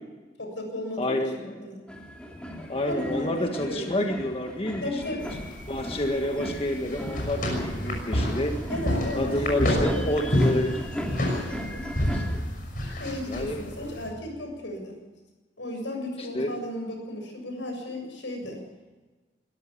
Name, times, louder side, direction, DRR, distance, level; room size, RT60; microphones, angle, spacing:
voice 1, 0.4-1.8 2.9-4.1 4.8-5.4 8.6-10.6 11.2-11.9 13.0-15.0 15.6-18.6, left 1 dB, 90° left, 3 dB, 7.2 m, -35 dB
voice 2, 1.0-1.5 2.7-5.0 5.7-8.6 9.1-10.8 12.0-12.4 13.3-13.6 16.2-16.6, left 1 dB, 30° left, 3 dB, 1.7 m, -29 dB
sound 1, 1.9-12.4, equal, 5° left, 2.7 m, -37 dB
sound 2, 5.2-14.1, left 1 dB, 50° left, 6.3 m, -29 dB
22.0 x 14.0 x 8.6 m, 1.3 s
head